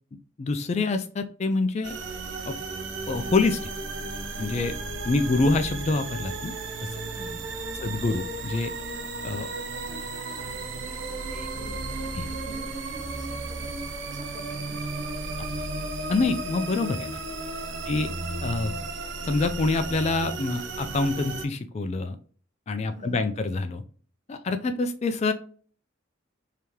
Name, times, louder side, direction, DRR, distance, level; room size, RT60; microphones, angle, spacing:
voice 1, 0.4-1.9 2.5-2.6 3.1-3.6 4.4-4.8 5.0-6.5 6.8-6.9 7.8-8.7 9.2-9.5 12.2-12.3 15.4-15.5 16.1-17.2 17.9-18.1 18.4-18.9 19.2-22.2 22.7-23.8 24.3-25.3, left 3 dB, 35° left, 8 dB, 0.3 m, -26 dB
sound 1, 1.8-21.5, right 3 dB, 65° right, 0.6 m, -34 dB
voice 2, 7.1-7.5 7.8-8.0 9.7-13.7 14.1-14.8 15.3-15.4 17.8-18.2 22.8-23.4, right 1 dB, 40° right, 3 dB, 0.9 m, -48 dB
3.5 x 2.8 x 3.0 m, 0.43 s
head